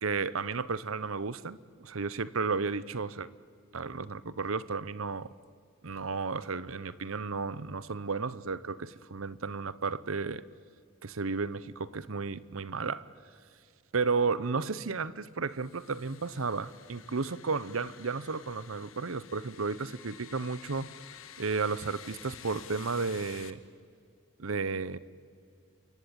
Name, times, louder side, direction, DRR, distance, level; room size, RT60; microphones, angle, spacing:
voice 1, 0.0-3.3 3.7-5.3 5.8-10.4 11.0-13.1 13.9-20.9 21.4-23.6 24.4-25.0, right 4 dB, 85° right, 19 dB, 0.8 m, -33 dB
sound 1, 15.5-23.5, left 9 dB, 80° left, 1.5 m, -51 dB
28.5 x 23.5 x 8.8 m, 2.2 s
head